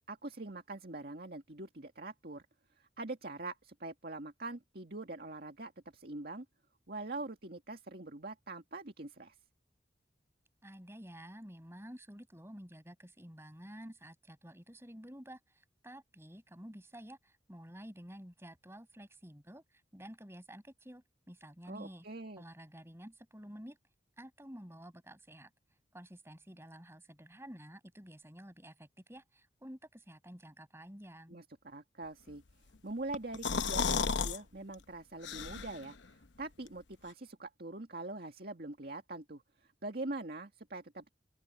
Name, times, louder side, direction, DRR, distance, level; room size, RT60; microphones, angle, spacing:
voice 1, 0.1-2.4 2.8-6.5 6.9-9.4 21.7-22.4 31.3-32.4 32.8-36.0 36.4-39.4 39.8-41.1, right 2 dB, 55° right, 2.0 m, -43 dB
voice 2, 10.6-22.1 22.4-23.8 24.2-25.5 25.9-31.4, equal, 15° right, 7.0 m, -51 dB
sound 1, 33.1-34.4 34.7-34.8 35.2-35.9, left 5 dB, 80° left, 0.9 m, -32 dB
open air
head